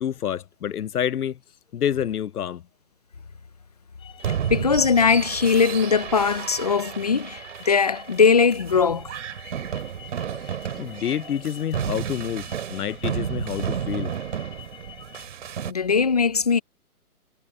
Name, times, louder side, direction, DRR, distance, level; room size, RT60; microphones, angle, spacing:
voice 1, 0.0-1.4 1.7-2.6 10.8-14.1, left 9 dB, 75° left, 0.8 m, -28 dB
sound 1, 4.0-15.3, left 10 dB, 10° left, 6.6 m, -48 dB
sound 2, 4.2-15.7, right 8 dB, 50° right, 3.5 m, -32 dB
voice 2, 4.5-9.1 15.7-16.6, left 5 dB, 25° left, 0.5 m, -20 dB
hypercardioid pair, 160°, 45 cm